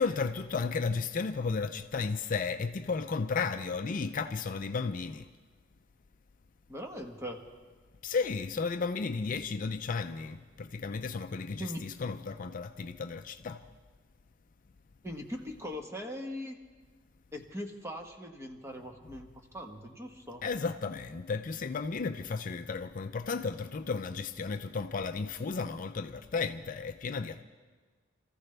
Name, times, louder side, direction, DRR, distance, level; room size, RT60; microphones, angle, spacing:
voice 1, 0.0-5.3 8.0-13.6 20.4-27.4, left 4 dB, 40° left, 0.4 m, -33 dB
voice 2, 6.7-7.4 11.6-11.9 15.0-16.6 17.3-20.4, equal, 15° right, 1.3 m, -40 dB
27.5 x 14.5 x 3.3 m
head